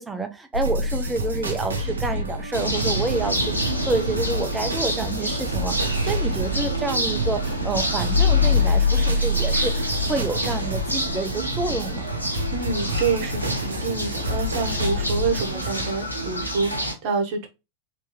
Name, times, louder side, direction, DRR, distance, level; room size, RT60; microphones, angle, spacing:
voice 1, 0.0-12.1, right 3 dB, 10° right, 0.6 m, -29 dB
sound 1, 0.5-15.9, left 2 dB, 75° right, 0.8 m, -26 dB
sound 2, 2.5-16.9, right 1 dB, 90° left, 0.8 m, -28 dB
voice 2, 12.5-17.5, right 4 dB, 45° right, 1.2 m, -27 dB
3.3 x 3.0 x 3.1 m
figure-of-eight pair, 90°, 0 cm